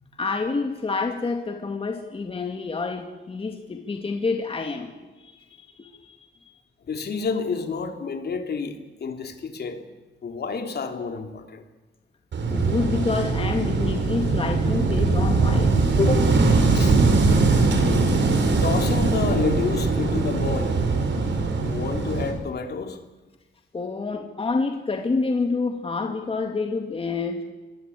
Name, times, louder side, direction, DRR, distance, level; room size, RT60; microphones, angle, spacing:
voice 1, 0.2-4.9 5.2-6.2 12.5-16.3 23.7-27.4, left 4 dB, 30° left, 4 dB, 2.3 m, -28 dB
voice 2, 6.9-9.8 10.2-11.6 16.7-17.0 18.6-20.8 21.6-23.0, left 5 dB, 55° left, 5 dB, 3.1 m, -29 dB
Wind / Waves surf, 12.3-22.3, right 3 dB, 65° right, 5.5 m, -21 dB
26.5 x 22.0 x 8.6 m, 1.2 s
wide cardioid pair, 140°, 20 cm